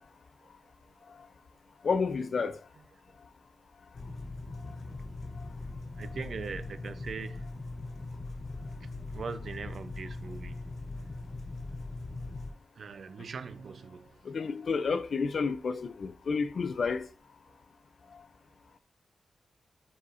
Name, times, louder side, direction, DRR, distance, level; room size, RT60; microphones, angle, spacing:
voice 1, 1.8-2.6 14.2-17.1, left 5 dB, 55° left, 0.5 m, -30 dB
sound 1, 3.9-12.5, left 2 dB, 75° left, 2.3 m, -40 dB
voice 2, 6.0-7.4 9.1-10.5 12.8-14.1, right 5 dB, 60° right, 0.6 m, -40 dB
9.7 x 4.1 x 2.5 m
wide cardioid pair, 130°, 0 cm